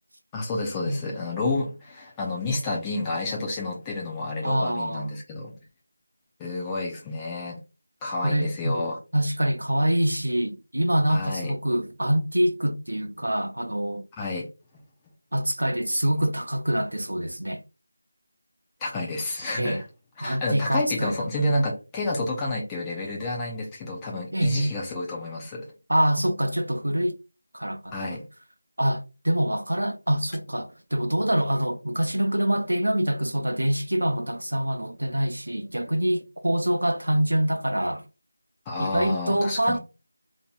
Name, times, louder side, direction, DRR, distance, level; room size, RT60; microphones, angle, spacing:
voice 1, 0.3-5.5 6.4-7.6 8.0-9.0 11.1-11.5 14.2-14.5 18.8-19.8 20.2-25.7 27.9-28.2 38.7-39.8, left 2 dB, 10° left, 0.4 m, -30 dB
voice 2, 4.4-5.2 8.2-8.9 9.1-14.0 15.3-17.6 19.6-19.8 20.2-21.4 24.3-24.7 25.9-27.2 27.5-28.2 28.8-38.0 38.8-39.8, right 1 dB, 85° right, 0.5 m, -25 dB
2.7 x 2.5 x 2.2 m
figure-of-eight pair, 170°, 0 cm